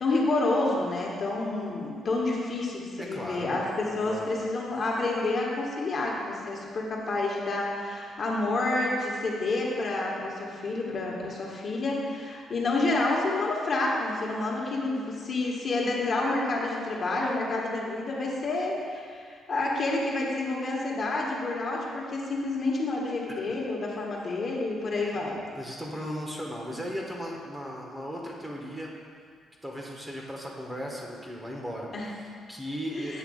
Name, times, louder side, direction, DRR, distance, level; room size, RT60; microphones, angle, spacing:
voice 1, 0.0-25.4 31.9-32.1 32.9-33.2, left 2 dB, 50° left, -3 dB, 1.4 m, -29 dB
voice 2, 3.0-3.6 3.9-4.3 14.6-14.7 23.3-23.4 24.9-25.2 25.5-28.9 29.6-33.2, equal, 10° right, -1 dB, 1.2 m, -37 dB
8.3 x 3.2 x 6.3 m, 2.1 s
cardioid pair, 90°, 0 cm